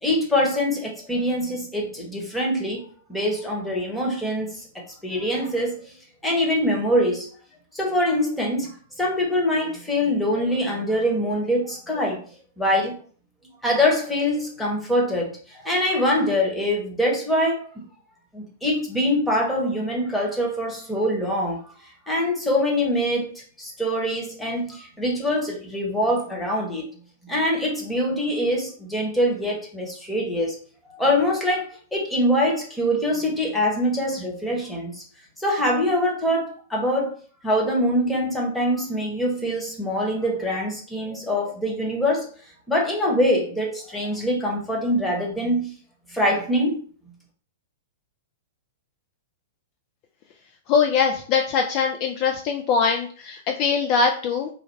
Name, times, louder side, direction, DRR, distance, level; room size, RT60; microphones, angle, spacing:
voice 1, 0.0-4.7 5.0-6.0 6.2-7.3 7.7-12.2 12.6-13.0 13.6-17.8 18.3-21.6 22.1-26.8 27.2-30.6 30.9-35.0 35.4-37.2 37.4-42.3 42.7-45.7 46.1-46.8, equal, 5° left, -2 dB, 1.1 m, -24 dB
voice 2, 50.7-54.5, left 5 dB, 40° left, 4 dB, 0.4 m, -22 dB
3.3 x 2.2 x 3.2 m, 0.43 s
figure-of-eight pair, 105°, 0 cm